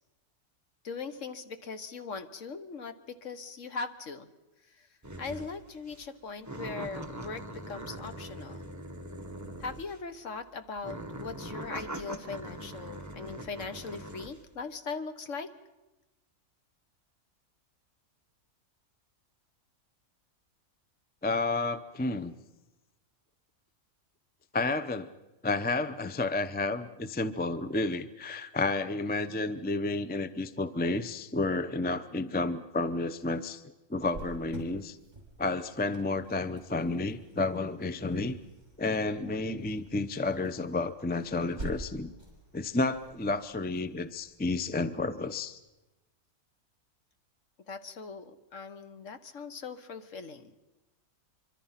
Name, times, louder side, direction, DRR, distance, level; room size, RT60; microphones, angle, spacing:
voice 1, 0.8-4.3 4.8-4.9 5.2-8.6 9.6-15.5 47.7-50.6, left 4 dB, 55° left, 10 dB, 1.5 m, -40 dB
sound 1, 5.0-5.6 5.9-6.1 6.4-10.1 10.8-14.4, right 1 dB, 10° right, 1.3 m, -41 dB
voice 2, 21.2-22.3 24.5-25.1 25.4-33.6 33.9-35.0 35.4-38.4 38.8-42.1 42.5-45.6, left 3 dB, 10° left, 13 dB, 0.5 m, -31 dB
Cricket, 34.0-45.5, right 2 dB, 30° right, 5.8 m, -48 dB
25.0 x 24.5 x 5.8 m, 1.0 s
omnidirectional pair, 1.6 m